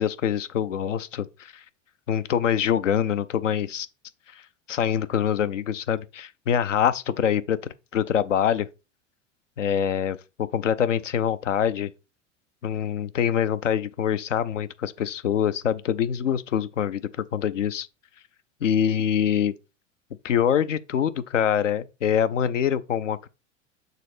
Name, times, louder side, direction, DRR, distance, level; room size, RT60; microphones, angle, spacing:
voice 1, 0.0-1.6 2.1-3.9 4.3-4.4 4.7-7.6 7.9-8.7 9.6-11.9 12.6-17.0 17.3-17.9 18.6-19.5 20.2-23.3, left 9 dB, 75° left, 0.7 m, -24 dB
6.7 x 3.9 x 4.9 m
figure-of-eight pair, 85°, 37 cm